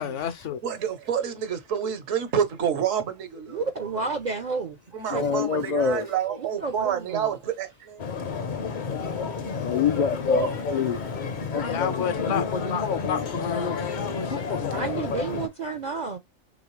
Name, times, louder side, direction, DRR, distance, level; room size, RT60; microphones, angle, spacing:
voice 1, 0.0-0.6 11.6-12.4 12.7-14.9, left 8 dB, 70° left, 1.0 m, -32 dB
voice 2, 0.6-3.7 4.9-8.0 10.4-10.8, right 8 dB, 80° right, 1.3 m, -28 dB
voice 3, 3.5-4.8 5.1-5.2 6.4-7.3 9.8-10.0 10.3-10.5 10.7-10.9 14.7-16.2, right 4 dB, 60° right, 0.4 m, -31 dB
voice 4, 5.1-6.1 9.6-12.1, left 6 dB, 85° left, 0.3 m, -26 dB
sound 1, 8.0-15.5, left 5 dB, 50° left, 0.7 m, -29 dB
3.9 x 3.2 x 3.1 m
omnidirectional pair, 1.3 m